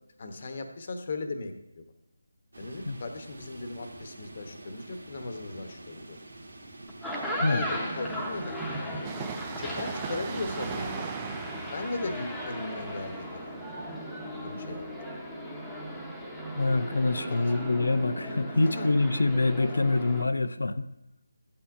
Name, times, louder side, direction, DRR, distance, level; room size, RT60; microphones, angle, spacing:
voice 1, 0.2-1.8 2.6-6.2 7.5-8.6 9.6-11.1 11.7-13.5 14.4-14.8 17.3-17.5 18.6-18.9, left 3 dB, 45° left, 6 dB, 1.0 m, -37 dB
sound 1, 2.5-11.0, right 2 dB, 75° right, 1.7 m, -47 dB
sound 2, 6.9-20.2, equal, 5° left, 0.9 m, -37 dB
Train, 9.0-16.5 16.7-16.8, right 6 dB, 20° right, 0.4 m, -40 dB
voice 2, 16.5-20.9, left 2 dB, 75° left, 13 dB, 0.5 m, -25 dB
12.5 x 8.7 x 2.6 m, 0.89 s
figure-of-eight pair, 160°, 0 cm